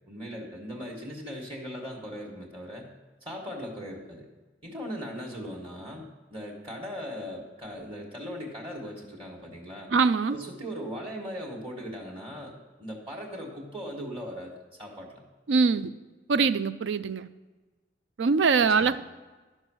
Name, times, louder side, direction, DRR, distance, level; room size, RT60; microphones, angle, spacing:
voice 1, 0.1-2.9 3.2-4.3 4.6-9.9 10.3-14.5 14.8-15.2 18.8-19.0, equal, 30° right, -3 dB, 1.4 m, -39 dB
voice 2, 9.9-10.4 15.5-15.9 16.3-17.3 18.2-19.0, right 5 dB, 85° right, 14 dB, 0.5 m, -23 dB
12.0 x 5.4 x 6.1 m, 1.3 s
head